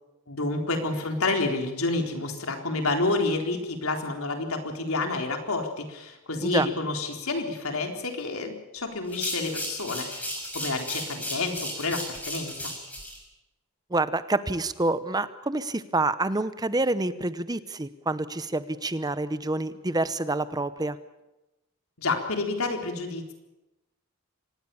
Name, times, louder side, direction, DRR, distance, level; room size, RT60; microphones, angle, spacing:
voice 1, 0.3-10.3 10.5-12.7 22.0-23.3, left 3 dB, 75° left, 4 dB, 4.0 m, -29 dB
sound 1, 9.0-13.2, left 1 dB, 5° left, 6.2 m, -35 dB
voice 2, 13.9-21.0, right 2 dB, 20° right, 14 dB, 0.8 m, -27 dB
25.0 x 19.5 x 7.1 m, 0.98 s
head